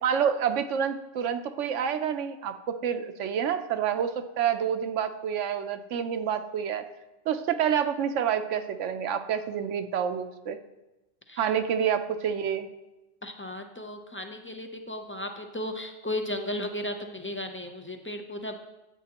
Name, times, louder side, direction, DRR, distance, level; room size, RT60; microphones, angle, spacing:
voice 1, 0.0-6.8 7.3-10.6 11.4-12.7, right 8 dB, 80° right, 9 dB, 1.0 m, -28 dB
voice 2, 13.2-18.6, left 1 dB, 20° left, 5 dB, 0.3 m, -35 dB
13.0 x 8.4 x 2.9 m, 1.0 s
omnidirectional pair, 1.2 m